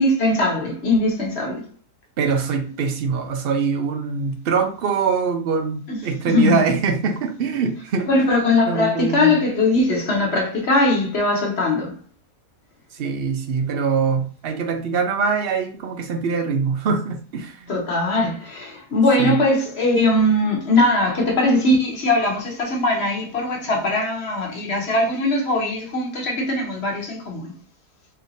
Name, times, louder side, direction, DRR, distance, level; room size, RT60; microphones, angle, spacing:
voice 1, 0.0-1.6 5.9-6.0 6.2-6.6 8.1-12.0 17.7-27.5, left 2 dB, 45° left, 1.3 m, -20 dB
voice 2, 2.2-8.4 8.7-9.4 12.9-17.7 19.2-19.4, right 5 dB, 65° right, 0.6 m, -23 dB
3.3 x 2.8 x 4.0 m
omnidirectional pair, 1.6 m